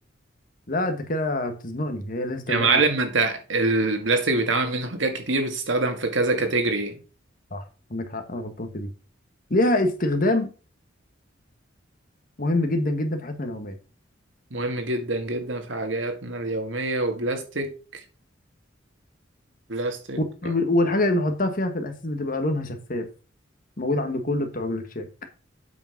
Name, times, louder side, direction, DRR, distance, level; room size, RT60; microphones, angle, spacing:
voice 1, 0.7-2.8 7.5-7.6 7.9-8.9 9.5-10.5 12.4-13.7 20.2-23.1 23.8-25.1, left 1 dB, 45° left, 1.5 m, -25 dB
voice 2, 2.5-7.0 14.5-18.0 19.7-20.2, right 3 dB, 75° right, 1.8 m, -25 dB
8.6 x 5.1 x 5.8 m
head